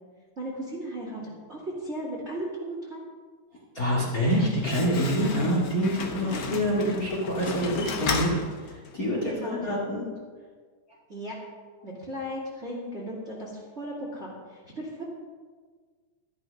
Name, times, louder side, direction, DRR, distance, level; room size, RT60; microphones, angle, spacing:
voice 1, 0.4-3.0 6.3-6.9 9.2-9.8 11.1-11.4 11.8-15.0, right 1 dB, 25° right, -3 dB, 2.0 m, -36 dB
voice 2, 3.7-10.0, equal, 30° left, -4 dB, 2.1 m, -26 dB
Slam, 4.0-9.1, left 4 dB, 60° left, 1.1 m, -34 dB
13.5 x 10.5 x 5.2 m, 1.6 s
omnidirectional pair, 3.6 m